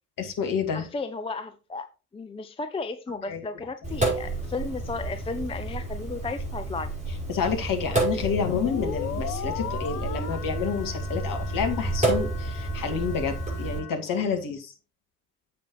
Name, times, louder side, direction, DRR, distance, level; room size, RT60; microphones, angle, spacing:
voice 1, 0.2-0.9 3.3-3.4 7.3-14.7, left 6 dB, 45° left, 2.3 m, -29 dB
voice 2, 0.7-1.9 2.1-6.9, left 3 dB, 10° left, 0.6 m, -34 dB
Sink (filling or washing), 3.8-13.8, right 2 dB, 15° right, 5.7 m, -30 dB
sound 1, 8.2-13.9, left 10 dB, 80° left, 0.7 m, -37 dB
10.0 x 7.6 x 3.1 m
figure-of-eight pair, 55°, 46 cm